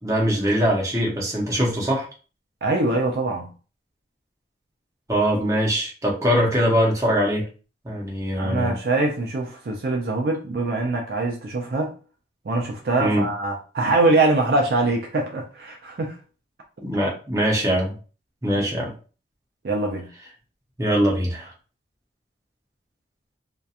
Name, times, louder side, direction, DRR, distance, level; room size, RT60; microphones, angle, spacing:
voice 1, 0.0-2.1 5.1-7.5 7.8-8.7 13.0-13.3 16.8-18.0 18.4-18.9 20.8-21.5, equal, 15° right, 0.6 m, -22 dB
voice 2, 2.6-3.5 8.4-11.9 12.5-16.1 19.6-20.1, right 2 dB, 55° right, 0.4 m, -23 dB
2.7 x 2.2 x 2.3 m
head